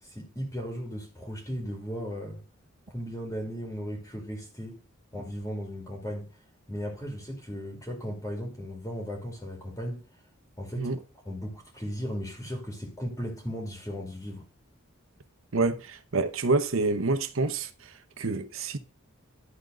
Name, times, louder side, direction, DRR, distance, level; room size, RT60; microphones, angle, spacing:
voice 1, 0.0-2.4 2.9-4.8 5.1-6.4 6.7-10.0 10.6-10.9 11.2-14.5, equal, 15° left, 2.3 m, -36 dB
voice 2, 15.5-18.8, right 3 dB, 75° right, 0.9 m, -28 dB
11.5 x 3.9 x 6.1 m
head